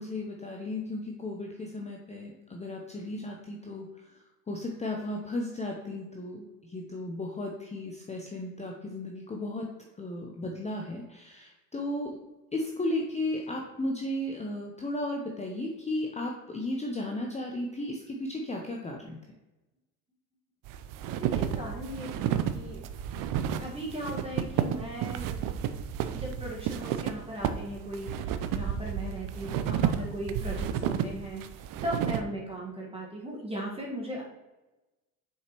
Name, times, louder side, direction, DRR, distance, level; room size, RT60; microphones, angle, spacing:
voice 1, 0.0-4.1 4.5-9.7 10.0-12.1 12.5-19.2, left 1 dB, 15° left, 0 dB, 0.7 m, -35 dB
sound 1, 20.7-32.2, right 9 dB, 45° right, 0.6 m, -31 dB
voice 2, 21.2-22.8 23.1-23.2 23.6-25.3 26.1-34.2, right 1 dB, 10° right, -3 dB, 1.6 m, -38 dB
6.4 x 5.1 x 3.0 m, 1.1 s
hypercardioid pair, 75°, 49 cm